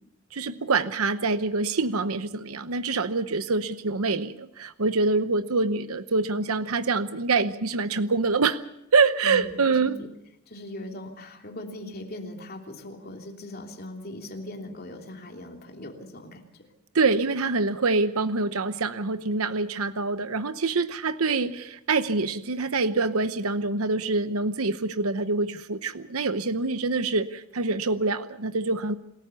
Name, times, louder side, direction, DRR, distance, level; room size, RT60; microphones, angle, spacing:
voice 1, 0.3-8.6 8.9-10.0 16.9-28.9, right 3 dB, 75° right, 12 dB, 0.9 m, -25 dB
voice 2, 9.2-10.1 10.5-16.4, left 1 dB, 45° left, 2 dB, 3.1 m, -39 dB
27.5 x 14.0 x 7.0 m, 0.81 s
head